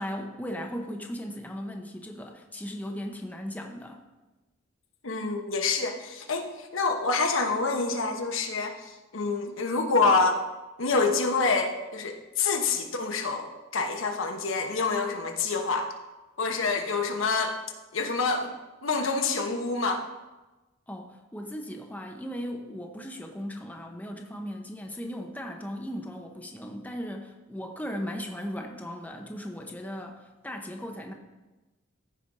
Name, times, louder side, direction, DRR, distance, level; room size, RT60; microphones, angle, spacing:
voice 1, 0.0-4.0 20.9-31.1, equal, 10° left, 2 dB, 0.7 m, -37 dB
voice 2, 5.0-10.4 10.8-15.9 16.4-17.6 17.9-18.5 18.8-20.0, left 4 dB, 75° left, 4 dB, 1.1 m, -27 dB
14.5 x 5.2 x 4.1 m, 1.1 s
head